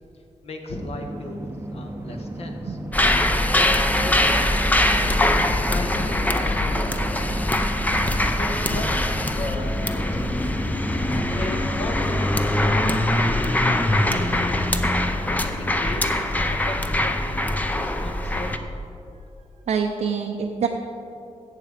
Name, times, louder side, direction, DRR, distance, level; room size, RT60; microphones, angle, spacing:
voice 1, 0.4-1.4 1.7-2.8 3.5-5.2 5.7-7.6 8.4-10.5 11.4-14.4 15.3-18.5, left 2 dB, 55° left, 3 dB, 1.5 m, -36 dB
sound 1, 0.7-15.1, right 1 dB, 20° right, 0.8 m, -34 dB
sound 2, 2.9-18.6, left 1 dB, 15° left, 0.7 m, -22 dB
voice 2, 19.7-20.7, right 6 dB, 80° right, 2 dB, 0.7 m, -25 dB
14.0 x 8.2 x 5.1 m, 2.8 s
wide cardioid pair, 125°, 12 cm